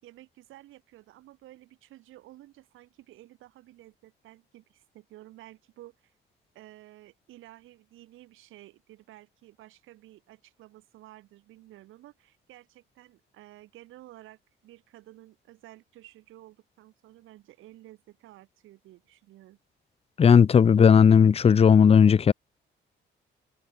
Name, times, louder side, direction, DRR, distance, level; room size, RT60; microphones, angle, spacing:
voice 1, 0.0-6.1 6.5-19.6, right 15 dB, 90° right, 5.6 m, -52 dB
voice 2, 20.2-22.3, left 7 dB, 30° left, 0.5 m, -16 dB
cardioid pair, 90°, 20 cm